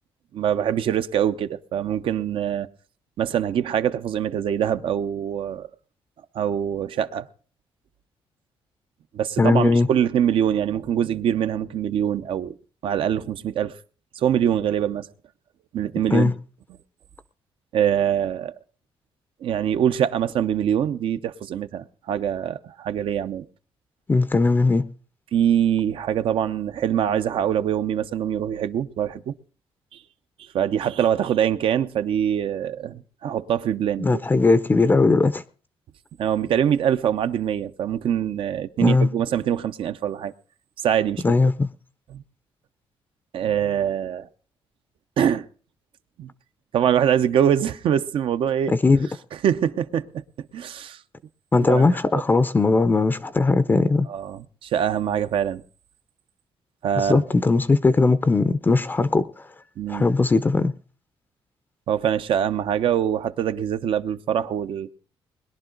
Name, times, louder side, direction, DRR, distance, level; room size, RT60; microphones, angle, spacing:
voice 1, 0.3-2.7 3.2-5.7 6.3-7.3 9.1-12.5 12.8-13.7 14.1-15.1 15.7-16.3 17.7-18.5 19.4-23.5 25.3-29.3 30.5-34.2 36.2-40.3 40.8-41.2 42.1-42.2 43.3-44.3 45.2-45.4 46.2-46.3 46.7-48.7 49.4-50.2 50.5-51.0 51.7-51.9 54.1-55.6 56.8-57.2 59.8-60.1 61.9-64.9, right 9 dB, 65° right, 0.8 m, -24 dB
voice 2, 9.4-9.9 16.1-16.3 24.1-24.9 34.0-35.4 38.8-39.1 41.2-41.7 48.7-49.1 51.5-54.1 57.0-59.5 59.9-60.7, left 3 dB, 20° left, 0.6 m, -19 dB
21.0 x 11.0 x 3.9 m
cardioid pair, 135°, 10 cm